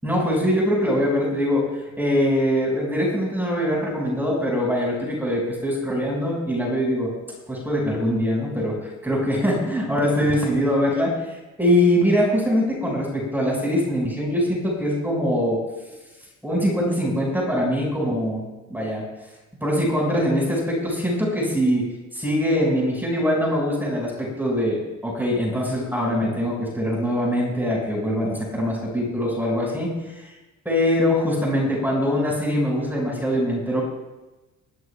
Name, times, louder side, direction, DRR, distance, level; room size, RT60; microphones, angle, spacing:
voice 1, 0.0-7.1 7.5-11.1 11.6-15.6 16.4-18.4 18.7-19.0 19.6-21.8 22.1-29.9 30.7-33.8, equal, 5° right, -3 dB, 5.4 m, -23 dB
21.5 x 13.0 x 2.3 m, 1.1 s
cardioid pair, 90°, 30 cm